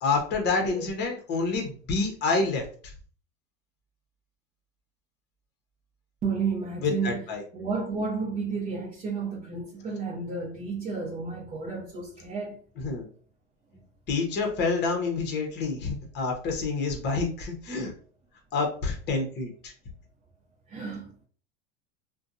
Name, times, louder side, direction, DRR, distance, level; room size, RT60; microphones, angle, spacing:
voice 1, 0.0-2.6 6.8-7.4 12.8-13.0 14.1-17.9 18.5-19.7, left 4 dB, 30° left, 0.8 m, -28 dB
voice 2, 6.2-7.2 7.5-12.6 20.7-21.2, right 4 dB, 25° right, 0.7 m, -32 dB
2.6 x 2.2 x 2.6 m
supercardioid pair, 135°, 37 cm